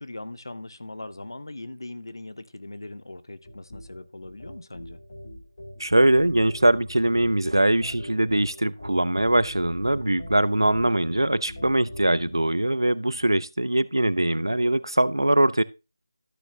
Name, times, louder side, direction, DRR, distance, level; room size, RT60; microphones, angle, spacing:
voice 1, 0.0-5.0, left 2 dB, 70° left, 0.8 m, -40 dB
sound 1, 3.4-12.4, equal, 45° left, 2.8 m, -42 dB
voice 2, 5.8-15.6, right 1 dB, 90° right, 0.6 m, -22 dB
13.5 x 6.3 x 2.8 m
figure-of-eight pair, 165°, 2 cm